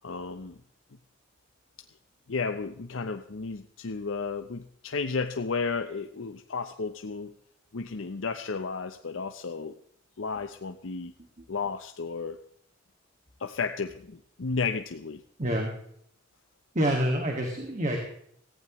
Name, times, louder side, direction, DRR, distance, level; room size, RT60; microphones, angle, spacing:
voice 1, 0.0-0.6 2.3-7.3 7.7-9.8 10.2-11.1 11.5-12.4 13.4-15.2, left 4 dB, 90° left, 7 dB, 0.7 m, -33 dB
voice 2, 15.4-15.7 16.7-18.0, right 1 dB, 40° right, 2 dB, 1.9 m, -27 dB
17.5 x 15.0 x 3.1 m, 0.69 s
head